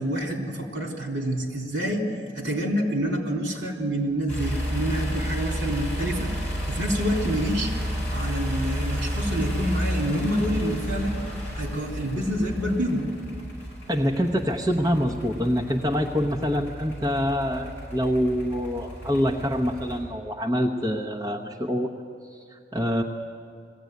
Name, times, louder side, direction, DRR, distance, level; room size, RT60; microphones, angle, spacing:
voice 1, 0.0-2.1 2.3-6.3 6.7-11.2 11.5-13.1, equal, 75° right, 1 dB, 3.5 m, -27 dB
sound 1, 4.3-20.0, equal, 10° left, 7.5 m, -32 dB
voice 2, 13.9-21.9 22.3-23.0, equal, 20° right, 0 dB, 0.9 m, -25 dB
20.5 x 15.5 x 9.4 m, 2.4 s
head